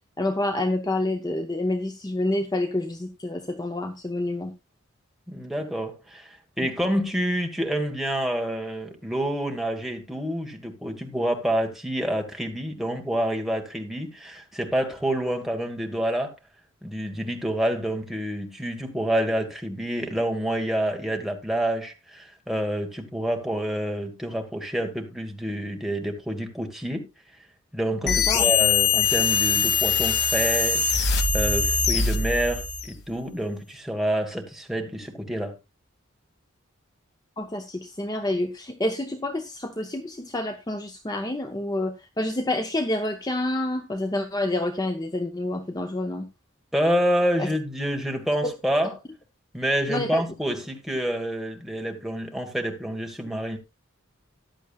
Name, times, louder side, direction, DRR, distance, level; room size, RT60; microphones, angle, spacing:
voice 1, 0.2-4.5 6.6-6.7 28.0-28.5 37.4-46.3 47.4-47.5 49.9-50.2, left 1 dB, 20° left, 0.7 m, -28 dB
voice 2, 5.3-16.3 16.8-27.1 27.7-35.5 46.7-48.9 49.5-53.6, equal, ahead, 1.5 m, -28 dB
sound 1, 28.1-32.9, left 5 dB, 55° left, 1.5 m, -22 dB
14.0 x 10.0 x 2.4 m
head